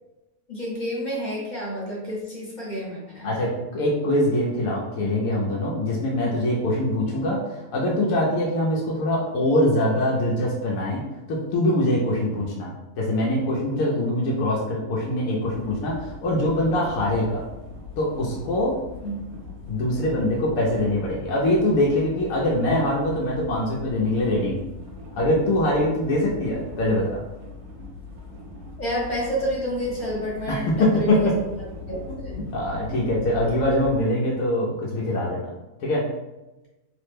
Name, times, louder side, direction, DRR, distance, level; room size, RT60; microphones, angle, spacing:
voice 1, 0.5-3.3 19.0-19.2 28.8-31.3 31.9-32.5, equal, 40° left, -5 dB, 0.7 m, -29 dB
voice 2, 3.2-11.0 11.3-17.4 18.0-18.7 19.7-24.6 25.2-27.2 30.5-31.3 32.1-35.4 35.8-36.0, left 1 dB, 70° left, -4 dB, 1.0 m, -23 dB
sound 1, 15.4-34.1, left 3 dB, 85° right, 1.2 m, -40 dB
3.2 x 2.1 x 3.2 m, 1.0 s
omnidirectional pair, 1.6 m